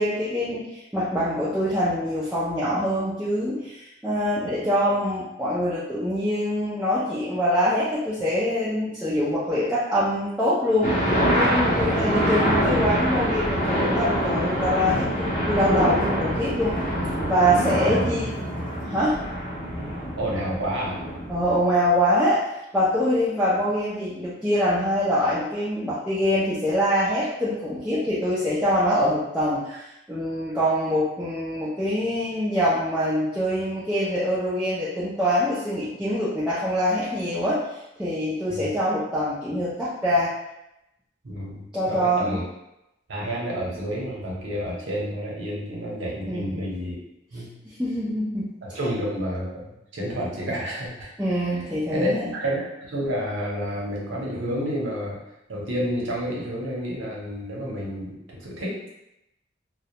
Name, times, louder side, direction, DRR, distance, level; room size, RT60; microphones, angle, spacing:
voice 1, 0.0-10.9 11.3-16.8 17.3-18.3 18.8-19.2 21.3-22.4 22.7-37.6 38.0-40.3 41.7-42.4 46.3-46.6 47.6-48.8 51.2-52.3, equal, 5° right, -12 dB, 0.4 m, -24 dB
sound 1, 10.8-21.5, equal, 35° left, 0.6 m, -25 dB
voice 2, 20.2-21.0 38.5-38.7 41.2-42.4 43.1-47.0 47.3-47.5 48.6-49.7 49.9-51.1 51.4-51.5 51.9-55.2 55.5-58.9, equal, 85° right, -4 dB, 0.7 m, -30 dB
2.3 x 2.0 x 2.8 m, 0.87 s
head